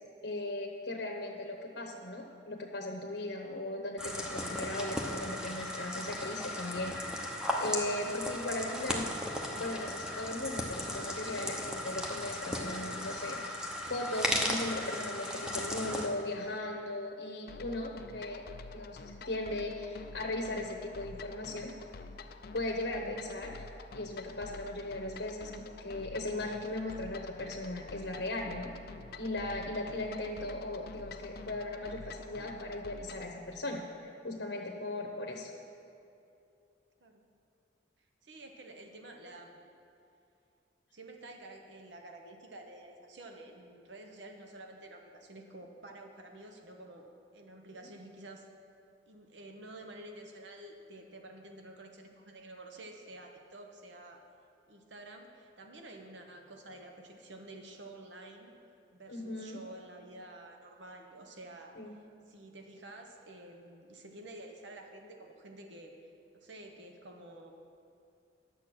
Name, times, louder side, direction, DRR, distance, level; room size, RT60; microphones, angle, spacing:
voice 1, 0.2-7.0 7.6-9.1 9.5-13.4 13.9-18.5 18.7-19.0 19.2-21.7 22.5-28.7 29.2-35.5 59.1-59.6 61.8-61.9, left 2 dB, 65° left, 2 dB, 0.9 m, -38 dB
sound 1, 4.0-16.1, left 1 dB, 5° right, 0.8 m, -36 dB
sound 2, 17.5-33.3, left 3 dB, 50° left, 0.4 m, -48 dB
voice 2, 38.2-39.7 40.9-47.1 47.3-48.5 49.1-54.2 54.7-58.6 58.9-61.8 62.3-67.5, right 1 dB, 70° right, 3 dB, 0.9 m, -50 dB
10.5 x 7.4 x 6.1 m, 2.6 s
head